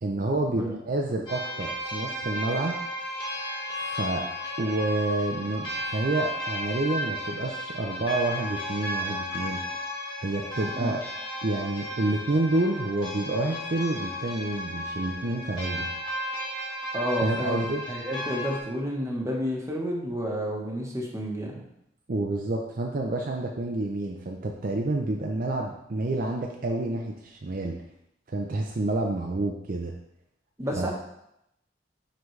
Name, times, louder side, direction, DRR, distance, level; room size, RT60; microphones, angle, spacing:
voice 1, 0.0-2.7 3.8-4.2 4.6-5.7 5.9-9.6 10.2-11.0 11.4-15.9 17.2-17.8 22.1-27.8 28.3-29.9 30.7-30.9, right 2 dB, 50° right, 1 dB, 0.6 m, -28 dB
sound 1, 1.3-18.6, left 1 dB, 25° left, 1.6 m, -34 dB
voice 2, 16.9-21.6 30.6-30.9, equal, 15° right, -2 dB, 1.2 m, -30 dB
9.3 x 3.9 x 3.2 m, 0.81 s
head